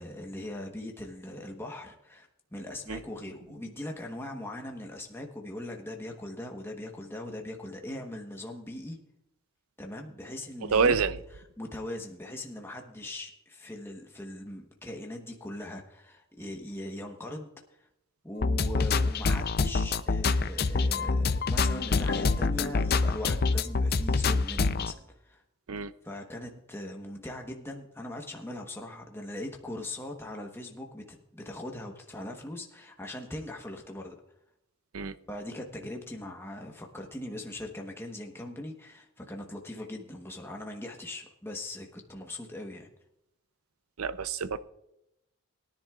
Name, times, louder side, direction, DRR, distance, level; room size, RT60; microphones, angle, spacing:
voice 1, 0.0-9.0 9.8-11.0 11.6-17.9 18.2-25.4 26.0-34.2 35.3-42.9, left 1 dB, 10° left, 1.1 m, -40 dB
voice 2, 10.7-11.2 25.7-25.9 34.9-35.1 44.0-44.6, right 5 dB, 85° right, 0.6 m, -27 dB
sound 1, 18.4-24.9, left 4 dB, 45° left, 0.5 m, -26 dB
21.5 x 10.5 x 2.4 m
head